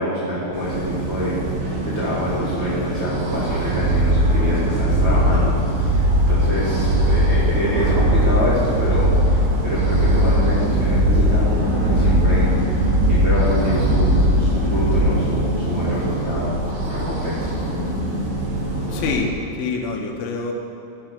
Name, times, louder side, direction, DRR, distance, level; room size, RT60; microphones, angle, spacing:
voice 1, 0.0-16.5 16.8-17.6, equal, 40° right, -11 dB, 1.9 m, -26 dB
sound 1, 0.5-19.1, right 1 dB, 85° right, 4.5 m, -25 dB
sound 2, 3.3-15.0, equal, 60° right, 4.8 m, -19 dB
voice 2, 18.9-19.3 19.6-20.5, left 4 dB, 85° left, 2 dB, 3.5 m, -25 dB
13.0 x 6.8 x 5.9 m, 2.5 s
omnidirectional pair, 5.5 m